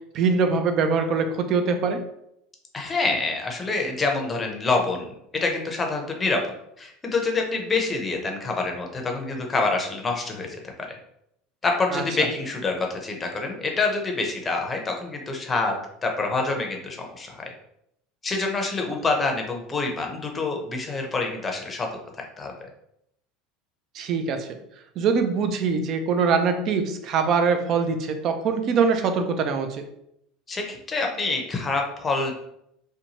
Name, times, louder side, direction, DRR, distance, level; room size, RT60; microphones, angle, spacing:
voice 1, 0.1-2.0 11.9-12.0 23.9-24.5 25.0-29.8, right 5 dB, 50° right, 6 dB, 0.4 m, -23 dB
voice 2, 2.7-6.4 6.8-11.0 11.6-15.8 16.0-17.5 18.2-21.9 22.2-22.5 30.5-32.3, left 3 dB, 25° left, 2 dB, 0.6 m, -26 dB
2.7 x 2.2 x 2.8 m, 0.77 s
supercardioid pair, 105°, 0 cm